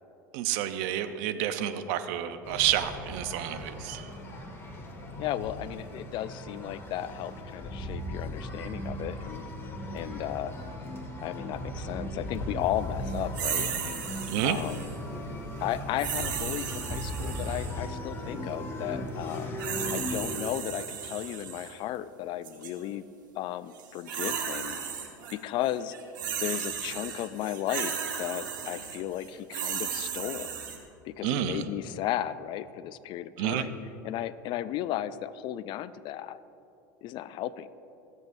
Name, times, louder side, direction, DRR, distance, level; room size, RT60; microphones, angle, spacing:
voice 1, 0.3-4.1 14.3-14.6 31.2-31.6 33.4-33.7, right 12 dB, 65° right, 10 dB, 0.8 m, -29 dB
sound 1, 2.4-20.4, left 1 dB, 25° left, 2.4 m, -37 dB
voice 2, 5.2-9.5 9.9-10.6 11.2-14.9 15.6-19.5 19.9-23.1 23.4-24.8 25.3-25.9 26.4-30.5 31.1-33.8 34.0-36.4 37.0-37.7, left 12 dB, 50° left, 16 dB, 0.5 m, -35 dB
sound 2, 13.3-15.0 16.0-17.8 19.3-21.7 22.4-22.7 23.8-25.3 25.6-30.8, right 8 dB, 80° right, 1.4 m, -35 dB
24.5 x 8.2 x 2.7 m, 2.9 s
hypercardioid pair, 85°, 10 cm